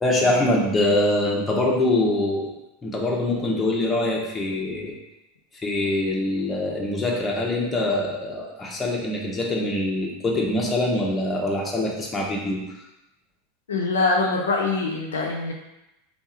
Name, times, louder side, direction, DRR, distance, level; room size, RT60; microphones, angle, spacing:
voice 1, 0.0-2.5 2.8-4.9 5.6-12.6, left 1 dB, 20° left, -3 dB, 1.1 m, -24 dB
voice 2, 13.7-15.5, left 3 dB, 85° left, -1 dB, 0.6 m, -23 dB
3.5 x 2.5 x 4.3 m, 0.90 s
hypercardioid pair, 95°, 0 cm